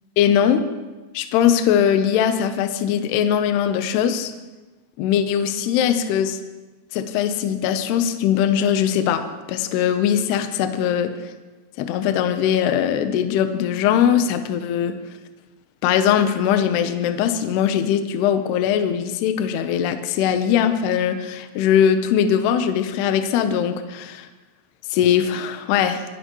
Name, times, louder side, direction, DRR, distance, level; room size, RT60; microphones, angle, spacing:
voice 1, 0.2-0.6 1.1-4.3 5.0-6.4 6.9-11.3 11.8-15.0 15.8-24.3 24.9-26.0, left 9 dB, 80° left, 8 dB, 2.4 m, -20 dB
26.5 x 11.0 x 3.0 m, 1.2 s
omnidirectional pair, 5.6 m